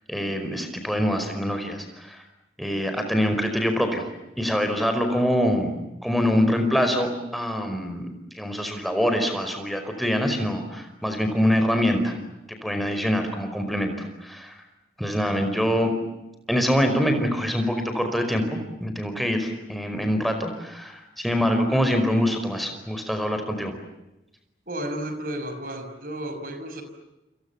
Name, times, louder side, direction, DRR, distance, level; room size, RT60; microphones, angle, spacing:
voice 1, 0.1-2.2 2.6-4.1 4.4-5.7 6.0-8.1 8.3-12.2 12.5-14.6 15.0-15.9 16.5-23.7, equal, ahead, 5 dB, 5.0 m, -24 dB
voice 2, 24.7-26.8, right 1 dB, 50° right, 8 dB, 5.9 m, -32 dB
29.5 x 28.0 x 7.2 m, 0.94 s
head